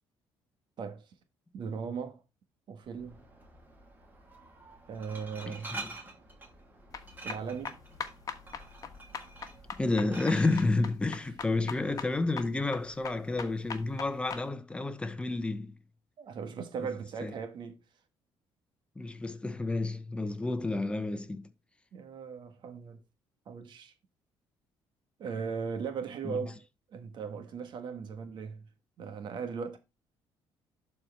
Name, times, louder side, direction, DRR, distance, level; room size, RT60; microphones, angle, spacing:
voice 1, 0.8-1.1 1.5-2.2 2.7-3.2 4.9-5.8 7.2-7.8 16.2-17.8 21.9-23.0 23.4-23.9 25.2-28.7 29.0-29.8, right 6 dB, 55° right, 1.5 m, -38 dB
Glass, 2.8-10.6, right 3 dB, 20° right, 3.1 m, -47 dB
voice 2, 5.5-5.9 9.8-15.8 17.2-17.3 19.0-21.5 26.2-26.4, left 2 dB, 10° left, 0.9 m, -30 dB
sound 1, 6.9-14.4, left 6 dB, 40° left, 1.4 m, -41 dB
11.5 x 4.5 x 3.5 m
cardioid pair, 135°, 10 cm